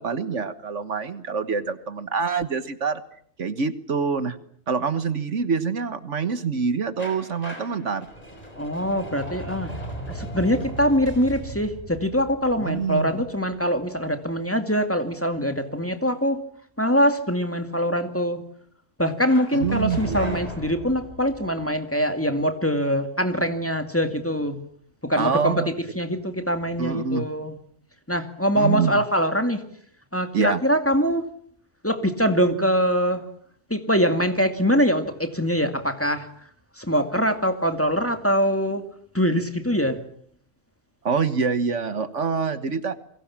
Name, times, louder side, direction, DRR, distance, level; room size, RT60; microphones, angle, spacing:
voice 1, 0.0-3.0 3.4-4.4 4.7-8.1 12.6-13.2 19.5-20.4 25.2-25.7 26.8-27.3 28.6-29.0 30.3-30.6 41.0-42.9, right 5 dB, 65° right, 12 dB, 1.7 m, -26 dB
sound 1, 7.0-13.8 19.3-21.5, right 1 dB, 30° left, 6.1 m, -37 dB
voice 2, 8.6-9.7 10.1-16.4 16.8-18.4 19.0-24.6 25.0-25.6 26.0-27.5 28.1-29.6 30.1-31.2 31.8-33.2 33.7-36.3 36.8-38.8 39.1-40.0, equal, 10° left, 7 dB, 2.3 m, -23 dB
29.5 x 23.0 x 7.4 m, 0.62 s
omnidirectional pair, 1.3 m